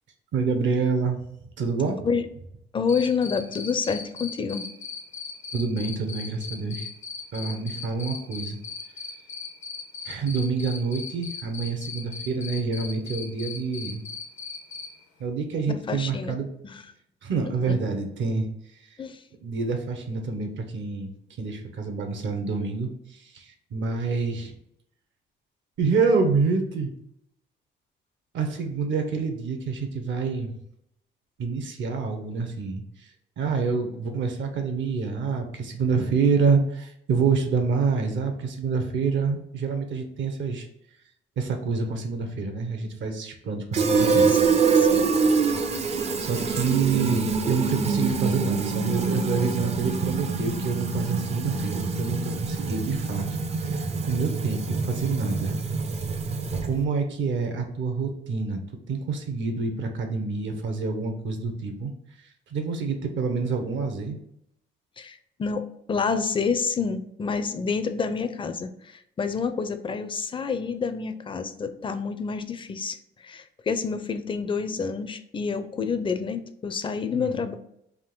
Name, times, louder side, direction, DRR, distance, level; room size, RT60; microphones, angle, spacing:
voice 1, 0.3-1.2 1.6-2.1 5.5-6.9 7.3-8.6 10.0-14.1 15.2-16.5 17.2-19.0 19.4-24.5 25.8-26.9 28.3-30.6 31.4-33.1 33.4-40.7 41.4-44.8 45.7-53.3 53.6-55.6 56.6-58.6 58.9-61.9 62.5-64.2 77.1-77.4, right 4 dB, 70° right, 5 dB, 0.8 m, -27 dB
voice 2, 2.7-4.7 15.7-16.4 16.6-16.8 17.7-17.8 19.0-19.2 44.8-45.2 65.0-73.0 73.2-77.6, left 5 dB, 25° left, 9 dB, 0.4 m, -28 dB
Cricket, 2.9-14.9, left 6 dB, 90° left, 0.9 m, -37 dB
Fill (with liquid), 43.7-56.8, right 4 dB, 35° right, 0.4 m, -25 dB
3.6 x 2.5 x 3.8 m, 0.76 s
cardioid pair, 90°, 20 cm